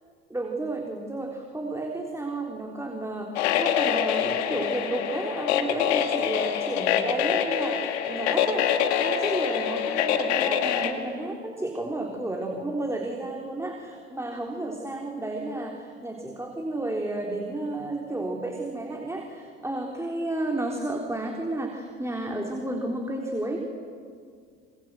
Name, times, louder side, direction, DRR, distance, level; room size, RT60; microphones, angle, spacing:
voice 1, 0.3-23.6, right 2 dB, 10° right, 1 dB, 3.6 m, -32 dB
sound 1, 3.4-10.9, left 9 dB, 80° left, 2.2 m, -25 dB
27.5 x 26.5 x 7.7 m, 2.1 s
hypercardioid pair, 65°, 33 cm